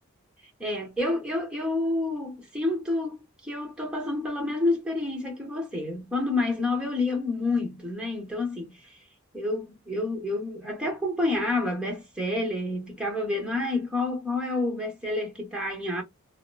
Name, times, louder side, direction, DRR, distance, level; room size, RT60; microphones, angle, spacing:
voice 1, 0.6-9.0 9.3-16.0, left 2 dB, 5° right, 1.0 m, -29 dB
2.9 x 2.0 x 2.2 m
head